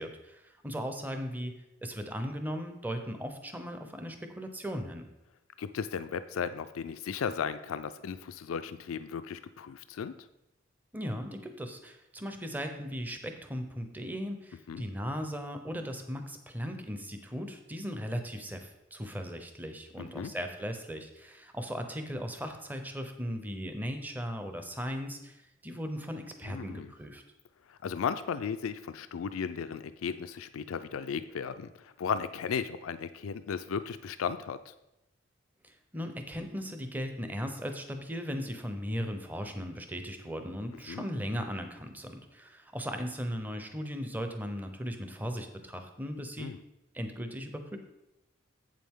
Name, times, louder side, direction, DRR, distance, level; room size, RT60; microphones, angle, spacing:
voice 1, 0.0-5.1 10.9-27.2 35.6-46.5 46.9-47.8, equal, 10° right, 6 dB, 0.7 m, -37 dB
voice 2, 5.6-10.1 14.7-14.8 20.0-20.3 26.4-26.9 27.7-34.7 40.9-41.1 46.4-46.6, left 6 dB, 80° left, 12 dB, 0.4 m, -35 dB
7.9 x 7.5 x 3.7 m, 0.92 s
head